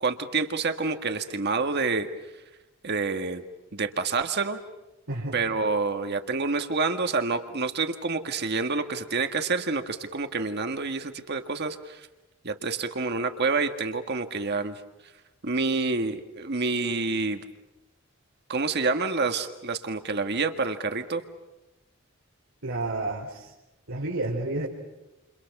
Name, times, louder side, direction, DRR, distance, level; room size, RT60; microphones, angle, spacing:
voice 1, 0.0-2.1 2.8-3.4 3.7-4.6 5.3-12.1 12.4-14.8 15.4-17.4 18.5-21.2, right 4 dB, 55° right, 7 dB, 1.7 m, -28 dB
voice 2, 5.1-5.5 22.6-23.5 23.9-24.7, right 2 dB, 75° right, -4 dB, 4.6 m, -30 dB
29.5 x 29.5 x 6.0 m, 1.0 s
head